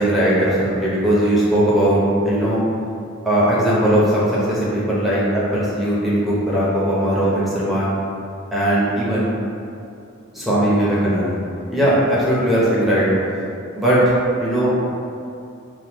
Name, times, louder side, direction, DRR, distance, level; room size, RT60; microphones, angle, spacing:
voice 1, 0.0-2.6 3.2-7.9 8.5-9.3 10.3-11.3 11.7-13.1 13.7-14.0 14.4-14.8, right 1 dB, ahead, -9 dB, 0.7 m, -18 dB
3.6 x 2.2 x 3.0 m, 2.6 s
head